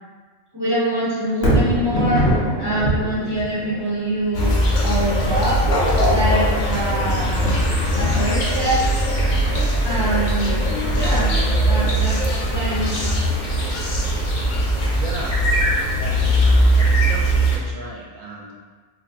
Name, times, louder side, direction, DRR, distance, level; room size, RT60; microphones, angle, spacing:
voice 1, 0.5-2.2 2.6-5.6 6.1-7.5 7.9-8.8 9.8-11.3 11.6-13.1, right 1 dB, 20° right, -11 dB, 1.1 m, -24 dB
Thunder, 1.3-15.5 16.0-16.1, right 1 dB, 55° left, 0.9 m, -27 dB
sound 1, 4.3-17.6, equal, 80° left, 0.4 m, -20 dB
voice 2, 14.9-15.5 15.9-18.5, right 2 dB, 70° right, -2 dB, 1.0 m, -35 dB
2.9 x 2.2 x 3.7 m, 1.5 s
omnidirectional pair, 1.5 m